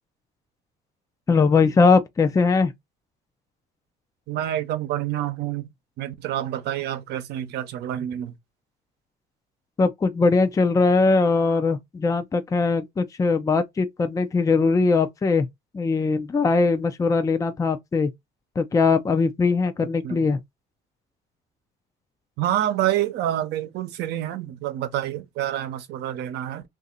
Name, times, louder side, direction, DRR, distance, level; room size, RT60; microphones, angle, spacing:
voice 1, 1.3-2.7 9.8-15.5 15.7-18.1 18.6-20.4, left 4 dB, 20° left, 0.5 m, -20 dB
voice 2, 4.3-5.7 6.0-8.4 20.0-20.3 22.4-26.6, right 12 dB, 80° right, 0.8 m, -27 dB
2.8 x 2.6 x 3.8 m
cardioid pair, 110°, 17 cm